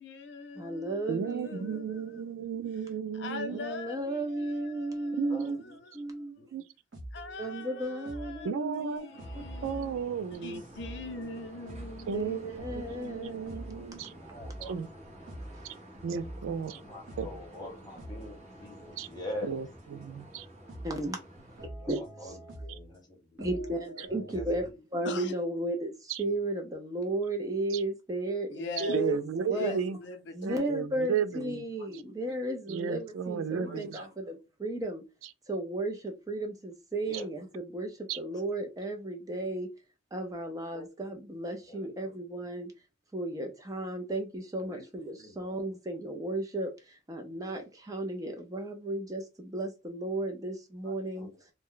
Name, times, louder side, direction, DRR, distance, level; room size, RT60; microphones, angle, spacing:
voice 1, 0.0-2.2 3.1-5.4 5.6-6.5 7.1-8.5 9.0-9.9 10.3-12.4 25.0-25.3 28.5-29.1 29.5-30.7, left 3 dB, 55° left, 0.5 m, -42 dB
voice 2, 0.6-2.7 3.5-5.6 5.9-6.4 7.4-9.0 9.3-9.4 12.1-14.1 20.8-21.2 21.9-22.4 23.4-29.2 29.5-29.9 30.3-35.0 35.5-39.7 40.1-42.7 43.1-51.3, right 1 dB, 15° right, 0.4 m, -35 dB
voice 3, 1.1-3.7 5.2-5.6 6.5-6.6 8.4-9.1 9.6-10.6 12.1-14.1 14.7-14.9 16.0-16.8 17.2-17.3 19.0-19.1 19.4-20.4 26.1-26.2 27.7-27.8 28.9-30.0 30.4-31.6 32.7-34.0 37.1-37.2 38.1-38.2, right 6 dB, 85° right, 0.3 m, -34 dB
voice 4, 5.2-5.9 6.4-6.5 14.2-14.8 16.7-19.5 21.8-23.4 24.0-24.4 32.0-32.1 33.6-34.0 37.1-37.3 40.7-40.8 41.7-41.9 44.6-44.8 45.2-45.6 50.8-51.4, left 1 dB, 20° left, 0.9 m, -44 dB
sound 1, 6.9-8.4 8.7-17.6 18.0-19.1 20.0-20.1 20.7-21.0 21.4-23.0 23.4-24.7, right 1 dB, 65° right, 1.2 m, -46 dB
sound 2, 9.1-21.7, right 1 dB, 35° right, 1.0 m, -51 dB
2.5 x 2.1 x 3.6 m
head